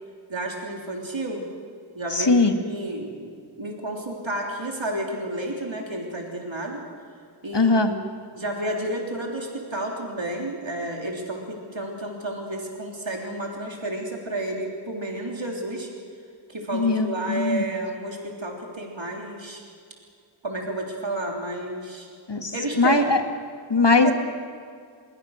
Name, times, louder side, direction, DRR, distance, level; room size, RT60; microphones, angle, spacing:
voice 1, 0.3-1.4 2.0-6.8 7.4-8.0 8.4-15.9 16.5-19.6 20.4-22.1 22.5-23.1 24.0-24.1, right 1 dB, 75° right, 0 dB, 3.6 m, -31 dB
voice 2, 2.1-2.5 7.5-7.9 16.7-17.6 22.3-23.2 23.7-24.1, left 3 dB, 60° left, 6 dB, 2.1 m, -20 dB
28.5 x 21.5 x 6.6 m, 2.2 s
wide cardioid pair, 45°, 46 cm